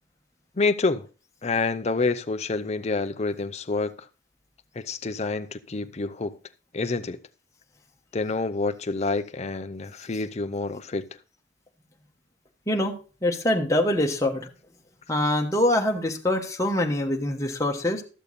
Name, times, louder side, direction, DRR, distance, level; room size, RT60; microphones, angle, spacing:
voice 1, 0.6-1.1 1.4-4.1 4.8-6.3 6.7-7.2 8.1-11.0, left 3 dB, 35° left, 0.6 m, -27 dB
voice 2, 13.2-14.4 15.1-18.0, left 1 dB, 15° left, 1.2 m, -24 dB
13.0 x 6.9 x 4.1 m
head